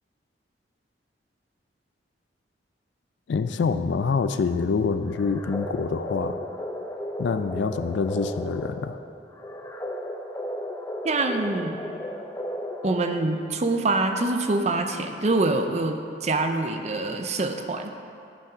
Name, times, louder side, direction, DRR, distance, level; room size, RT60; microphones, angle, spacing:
voice 1, 3.3-6.4 7.2-9.0, left 5 dB, 75° left, 10 dB, 0.4 m, -26 dB
sound 1, 5.1-13.5, equal, 15° left, 0.5 m, -34 dB
voice 2, 11.0-11.8 12.8-17.9, right 2 dB, 35° right, 6 dB, 0.5 m, -25 dB
11.0 x 5.9 x 4.9 m, 2.5 s
head